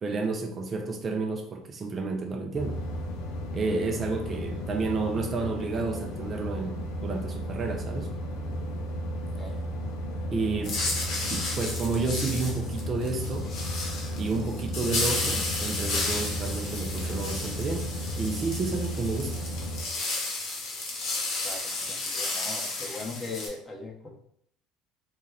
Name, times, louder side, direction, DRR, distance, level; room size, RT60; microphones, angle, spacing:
voice 1, 0.0-2.8 3.5-8.1 10.3-10.8 11.3-13.5 14.2-17.9 18.2-19.4, right 3 dB, 35° right, 3 dB, 0.4 m, -31 dB
sound 1, 2.5-19.8, equal, 80° left, 0.4 m, -34 dB
sound 2, 10.6-23.5, left 3 dB, 60° left, 0.9 m, -33 dB
voice 2, 21.4-24.1, left 3 dB, 25° left, 0 dB, 0.8 m, -39 dB
2.4 x 2.1 x 3.3 m, 0.69 s
supercardioid pair, 80°, 0 cm